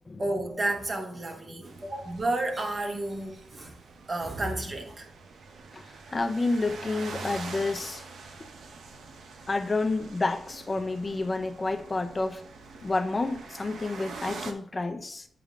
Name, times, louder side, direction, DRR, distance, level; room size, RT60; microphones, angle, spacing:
voice 1, 0.2-3.8 4.1-5.1, right 2 dB, 30° right, 1.0 m, -31 dB
sound 1, 1.6-14.5, right 4 dB, 75° right, 0.8 m, -45 dB
voice 2, 5.7-8.0 9.5-12.4 12.8-15.3, left 3 dB, 20° left, 0.5 m, -29 dB
9.3 x 3.6 x 3.6 m
wide cardioid pair, 170°, 0 cm